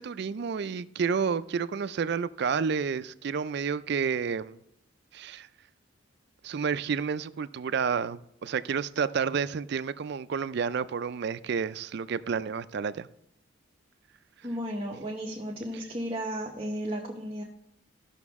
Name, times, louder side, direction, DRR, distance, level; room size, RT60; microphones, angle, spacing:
voice 1, 0.0-4.6 5.1-5.5 6.4-13.1, right 6 dB, 50° right, 0.3 m, -30 dB
voice 2, 14.4-17.4, equal, 25° right, 0.9 m, -34 dB
14.5 x 6.0 x 3.6 m
head